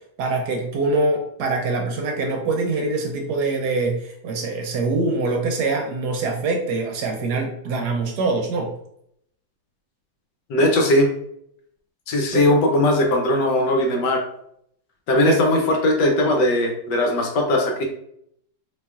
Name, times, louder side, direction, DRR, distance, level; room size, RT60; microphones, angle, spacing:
voice 1, 0.2-8.7 12.3-12.5 15.3-15.4, right 3 dB, 70° right, 2 dB, 1.1 m, -24 dB
voice 2, 10.5-11.1 12.1-14.2 15.1-17.8, left 1 dB, 70° left, 2 dB, 1.2 m, -19 dB
4.0 x 2.9 x 2.3 m, 0.72 s
omnidirectional pair, 2.0 m